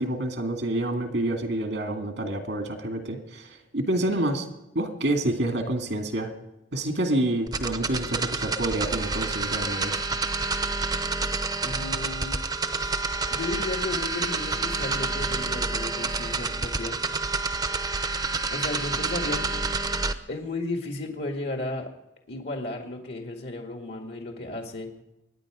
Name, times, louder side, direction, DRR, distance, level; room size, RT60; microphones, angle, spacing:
voice 1, 0.0-3.5 3.7-4.5 4.7-6.3 6.7-10.0, right 1 dB, 85° right, 4 dB, 2.2 m, -28 dB
sound 1, 7.5-20.1, right 3 dB, 20° right, 0.7 m, -28 dB
voice 2, 11.6-12.3 12.8-17.0 18.5-19.7 20.3-21.9 22.3-24.9, left 2 dB, 65° left, 3 dB, 2.0 m, -34 dB
24.5 x 9.9 x 5.0 m, 0.92 s
head